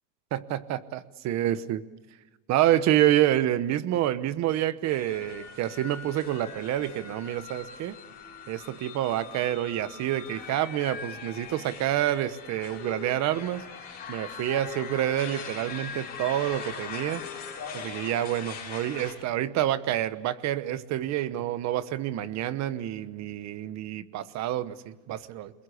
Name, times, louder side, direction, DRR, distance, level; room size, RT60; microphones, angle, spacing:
voice 1, 0.3-1.8 2.5-8.0 8.5-13.6 14.1-17.2 17.7-25.5, right 13 dB, 40° right, 14 dB, 1.1 m, -28 dB
sound 1, 4.8-19.1, left 6 dB, 20° left, 7.2 m, -41 dB
29.5 x 22.0 x 8.4 m, 1.1 s
cardioid pair, 170°, 42 cm